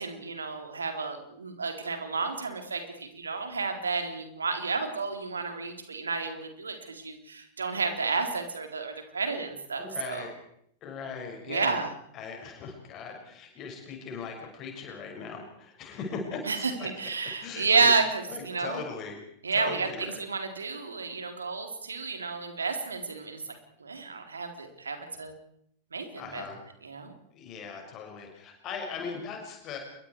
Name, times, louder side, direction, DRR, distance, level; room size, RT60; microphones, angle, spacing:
voice 1, 0.0-10.2 11.5-11.9 16.5-18.8 19.4-23.4 23.8-25.3 25.9-26.4 26.8-27.1, right 4 dB, 75° right, 6 dB, 4.0 m, -31 dB
voice 2, 9.8-10.3 10.8-11.8 12.1-16.9 17.4-17.9 18.3-19.2 19.5-20.2 26.2-26.6 27.3-29.8, left 5 dB, 35° left, 2 dB, 6.5 m, -39 dB
29.0 x 23.0 x 4.9 m, 0.71 s
figure-of-eight pair, 90°, 0 cm